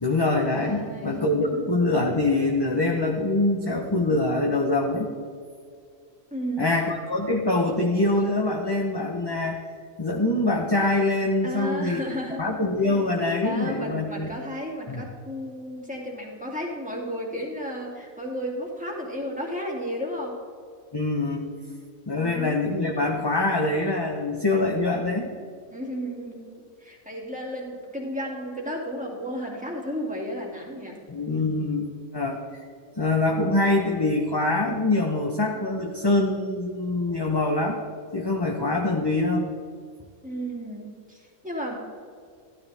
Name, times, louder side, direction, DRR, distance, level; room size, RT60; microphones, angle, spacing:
voice 1, 0.0-5.1 6.6-9.6 10.0-12.0 12.4-14.3 14.9-15.0 20.9-21.5 22.1-25.3 31.1-32.7 33.0-37.8 38.1-39.5, left 2 dB, 20° left, 1 dB, 0.8 m, -24 dB
voice 2, 0.6-1.6 6.3-6.7 11.4-12.4 12.8-12.9 13.4-20.4 22.1-22.5 25.7-31.0 40.2-41.8, equal, 5° right, -3 dB, 2.5 m, -33 dB
15.0 x 12.5 x 3.5 m, 2.2 s
omnidirectional pair, 1.4 m